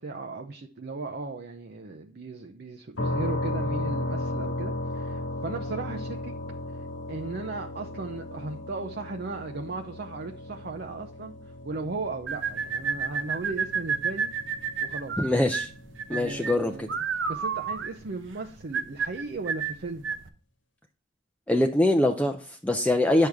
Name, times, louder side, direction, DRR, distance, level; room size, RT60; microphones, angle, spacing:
voice 1, 0.0-6.3 6.7-14.3 14.8-15.2 16.1-17.0 17.3-20.1, right 3 dB, 60° right, 3 dB, 0.7 m, -36 dB
sound 1, 3.0-16.7, left 1 dB, 85° left, 1.3 m, -35 dB
sound 2, 12.3-20.3, right 6 dB, 90° right, 0.8 m, -31 dB
voice 2, 15.2-15.7 16.1-16.9 21.5-23.3, left 1 dB, 5° left, 4 dB, 0.5 m, -23 dB
9.0 x 6.5 x 3.5 m, 0.41 s
head